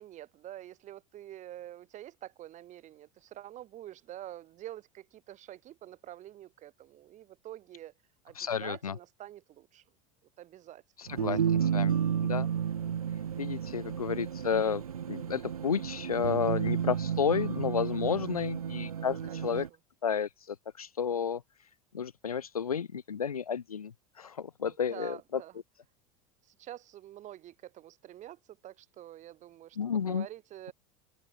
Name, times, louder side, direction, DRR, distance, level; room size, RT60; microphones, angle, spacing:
voice 1, 0.0-7.9 8.2-9.8 10.4-11.2 11.6-11.9 13.5-13.8 18.0-18.4 19.3-19.6 24.7-25.6 26.4-30.7, right 13 dB, 40° right, 6.2 m, -47 dB
voice 2, 8.4-8.9 11.0-12.5 13.4-14.8 15.1-19.7 20.0-21.4 21.9-25.4 29.8-30.3, left 7 dB, 85° left, 1.1 m, -32 dB
sound 1, 11.1-19.7, right 8 dB, 90° right, 0.4 m, -32 dB
open air
figure-of-eight pair, 80°, 18 cm